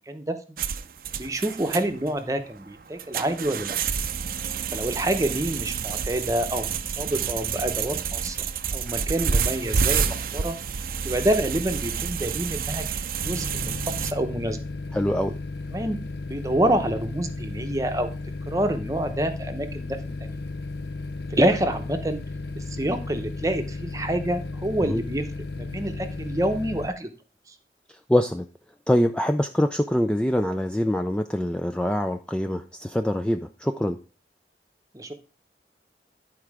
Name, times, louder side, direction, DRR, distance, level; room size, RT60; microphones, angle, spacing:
voice 1, 0.1-0.4 1.1-3.7 4.7-8.4 8.7-10.6 11.0-14.6 15.7-16.0 16.2-18.1 18.5-20.4 21.3-22.2 22.6-25.2 25.6-27.1 34.9-35.1, right 1 dB, 20° right, 7 dB, 0.8 m, -27 dB
sound 1, 0.6-14.1, right 6 dB, 55° right, 0.5 m, -29 dB
sound 2, 13.2-26.9, left 3 dB, 65° left, 0.6 m, -34 dB
voice 2, 14.9-15.3 24.9-25.0 28.1-28.5 28.9-34.0, left 1 dB, 5° left, 6 dB, 0.3 m, -24 dB
11.0 x 4.5 x 4.8 m, 0.36 s
head